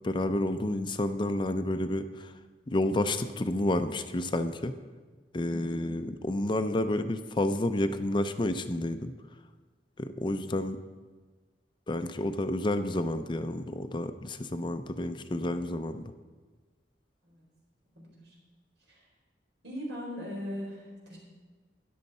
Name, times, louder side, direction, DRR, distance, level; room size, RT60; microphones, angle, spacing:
voice 1, 0.0-2.3 2.7-4.7 5.3-9.1 10.0-10.8 11.9-16.0, left 1 dB, 25° left, 9 dB, 0.5 m, -30 dB
voice 2, 5.5-5.9 17.2-17.4 18.0-18.4 18.9-19.0 19.6-21.2, equal, 90° right, -3 dB, 4.5 m, -40 dB
13.0 x 10.5 x 4.2 m, 1.4 s
head